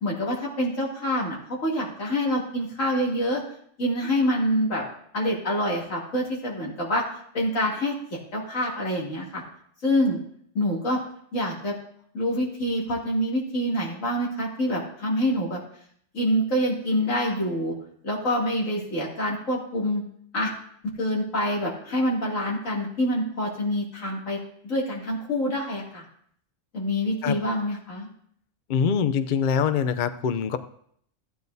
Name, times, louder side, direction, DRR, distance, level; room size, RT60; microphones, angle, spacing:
voice 1, 0.0-3.4 3.8-4.8 5.1-7.0 7.3-9.4 9.8-10.2 10.5-11.0 11.3-11.7 12.1-15.6 16.1-17.7 18.0-20.0 20.3-20.5 21.0-24.4 24.6-26.0 26.7-28.1, equal, 80° left, -4 dB, 3.0 m, -26 dB
voice 2, 28.7-30.6, left 7 dB, 55° left, 11 dB, 0.5 m, -24 dB
15.0 x 9.2 x 2.7 m, 0.65 s
omnidirectional pair, 1.3 m